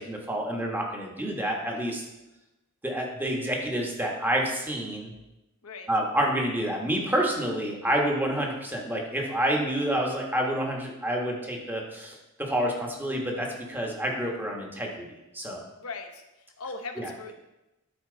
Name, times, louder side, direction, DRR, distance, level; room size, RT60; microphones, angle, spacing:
voice 1, 0.0-2.0 2.8-5.1 5.9-15.6 17.0-17.3, right 1 dB, 10° right, 0 dB, 1.3 m, -28 dB
voice 2, 15.8-16.2 16.6-17.3, left 3 dB, 75° left, 4 dB, 1.0 m, -38 dB
12.5 x 4.5 x 3.9 m, 0.97 s
head